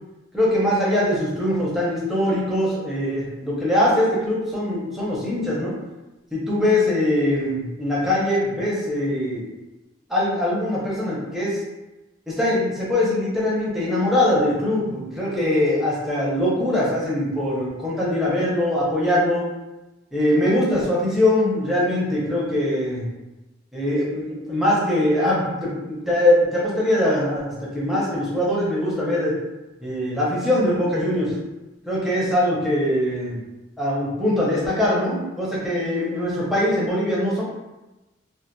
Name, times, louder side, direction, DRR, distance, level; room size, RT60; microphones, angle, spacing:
voice 1, 0.3-5.7 6.3-9.5 10.1-11.6 12.3-19.4 20.1-23.0 23.7-29.3 29.8-31.4 31.9-33.4 33.8-37.4, left 1 dB, ahead, -7 dB, 0.7 m, -22 dB
2.7 x 2.2 x 2.2 m, 1.0 s
head